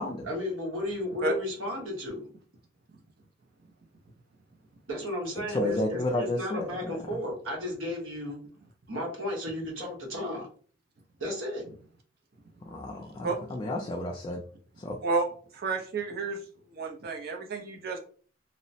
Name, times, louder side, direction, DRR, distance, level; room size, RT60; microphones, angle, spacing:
voice 1, 0.2-2.2 4.9-8.4 8.9-10.5 11.2-11.7, left 1 dB, 85° right, -2 dB, 1.1 m, -34 dB
voice 2, 5.5-6.6 12.7-14.4 14.8-15.0, left 1 dB, 25° left, 1 dB, 0.3 m, -31 dB
voice 3, 15.5-16.4 16.7-18.0, right 3 dB, 50° right, 2 dB, 0.6 m, -30 dB
2.9 x 2.0 x 2.7 m, 0.42 s
head